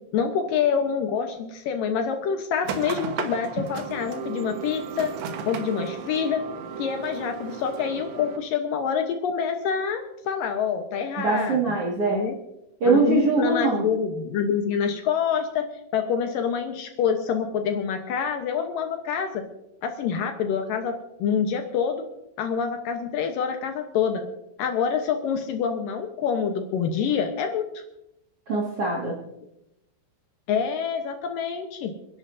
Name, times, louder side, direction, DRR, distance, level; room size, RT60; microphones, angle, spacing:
voice 1, 0.1-5.1 5.5-6.4 6.8-11.7 12.1-12.3 12.9-15.6 15.9-19.4 19.8-20.9 21.2-22.1 22.4-24.2 24.6-27.8 30.5-32.0, left 7 dB, 75° left, 5 dB, 2.1 m, -26 dB
sound 1, 2.6-8.4, right 7 dB, 80° right, 3.5 m, -35 dB
voice 2, 11.2-12.2 12.8-13.9 28.5-29.2, right 3 dB, 45° right, -3 dB, 2.0 m, -22 dB
28.5 x 10.5 x 2.7 m, 0.86 s
omnidirectional pair, 5.2 m